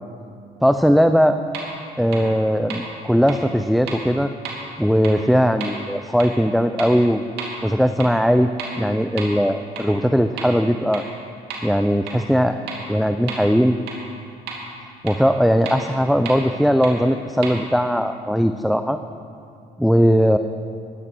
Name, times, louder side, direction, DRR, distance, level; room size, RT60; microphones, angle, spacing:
voice 1, 0.6-1.4 2.0-4.3 4.8-7.2 7.6-8.5 8.8-11.0 11.6-12.6 12.9-13.8 15.0-19.0 19.8-20.4, equal, ahead, 8 dB, 0.4 m, -19 dB
wood tap, 1.5-1.6 2.1-2.2 2.7-2.8 3.3-3.4 3.9-4.0 4.4-4.5 5.0-5.1 5.6-5.7 6.2-6.3 6.8-6.9 7.4-7.5 8.0-8.1 8.6-8.7 9.2-9.3 9.8-9.9 10.4-10.5 10.9-11.0 11.5-11.6 12.1-12.2 12.7-12.8 13.3-13.4 13.9-14.0 14.5-14.6 15.1-15.2 15.6-15.7 16.2-16.3 16.8-16.9 17.4-17.5, right 6 dB, 80° right, 3.0 m, -31 dB
15.0 x 11.0 x 6.1 m, 2.4 s
cardioid pair, 110°, 17 cm